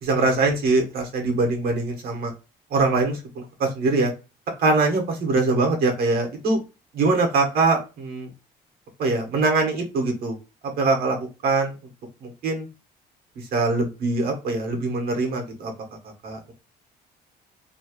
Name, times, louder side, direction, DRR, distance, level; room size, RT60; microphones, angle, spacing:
voice 1, 0.0-2.3 2.7-4.1 4.6-6.6 6.9-8.3 9.0-10.4 10.8-11.2 11.4-11.7 12.2-12.7 13.5-15.7 16.2-16.5, right 3 dB, 65° right, 2 dB, 1.3 m, -22 dB
3.0 x 2.4 x 3.0 m, 0.29 s
cardioid pair, 110°, 17 cm